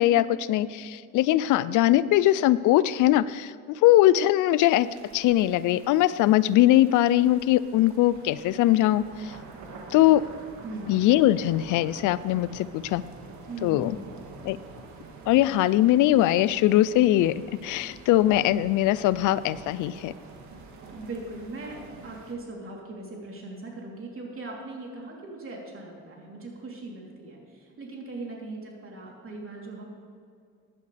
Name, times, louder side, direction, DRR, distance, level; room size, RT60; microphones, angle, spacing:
voice 1, 0.0-4.9 5.1-9.3 9.9-10.2 10.9-13.0 13.6-14.0 14.4-14.6 15.3-20.1, left 14 dB, 90° left, 18 dB, 0.5 m, -21 dB
sound 1, 4.6-22.4, right 3 dB, 70° right, 1.9 m, -47 dB
voice 2, 10.6-11.0 13.5-14.2 20.9-29.9, right 2 dB, 45° right, -2 dB, 3.4 m, -39 dB
15.5 x 11.0 x 3.4 m, 2.3 s
cardioid pair, 90°, 30 cm